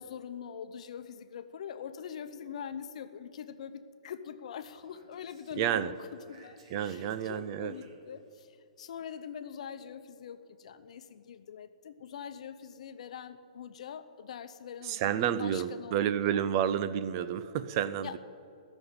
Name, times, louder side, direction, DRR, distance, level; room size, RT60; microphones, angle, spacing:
voice 1, 0.0-16.4 18.0-18.2, left 8 dB, 60° left, 10 dB, 0.8 m, -43 dB
Speech, 4.5-8.4, right 1 dB, 55° right, 3.2 m, -59 dB
voice 2, 5.6-5.9 6.7-7.8 14.8-18.2, right 9 dB, 35° right, 14 dB, 0.5 m, -30 dB
14.5 x 7.0 x 9.6 m, 2.6 s
hypercardioid pair, 150°, 4 cm